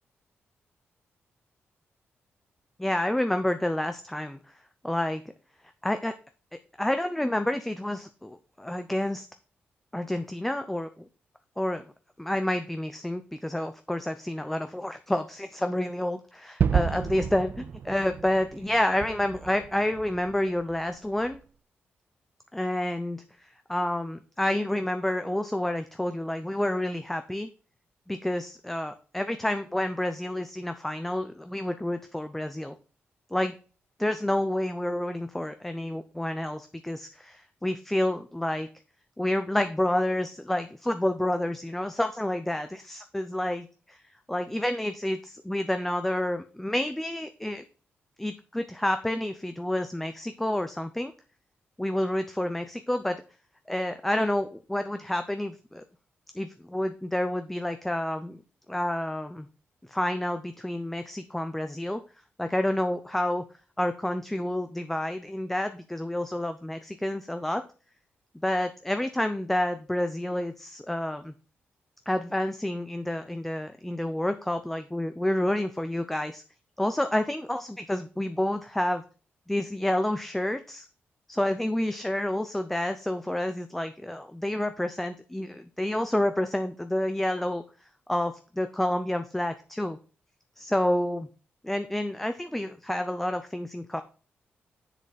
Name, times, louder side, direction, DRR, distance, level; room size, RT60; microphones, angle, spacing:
voice 1, 2.8-4.4 4.8-5.2 5.8-6.1 6.8-9.3 9.9-11.1 11.6-11.8 12.2-21.4 22.5-27.5 28.1-32.7 33.3-33.5 34.0-38.7 39.2-44.0 44.3-47.6 48.2-51.1 51.8-53.2 53.7-55.8 56.3-58.4 58.7-59.5 59.9-62.0 62.4-63.4 63.8-67.6 68.4-71.3 72.1-76.4 76.8-79.0 79.5-80.9 81.3-87.6 88.1-90.0 90.6-91.3 91.6-94.0, left 1 dB, 5° left, 8 dB, 0.5 m, -29 dB
Gunshot gunfire / Fireworks / Boom, 16.6-21.4, right 7 dB, 50° right, 0.4 m, -31 dB
7.6 x 6.6 x 4.1 m, 0.36 s
wide cardioid pair, 155°, 4 cm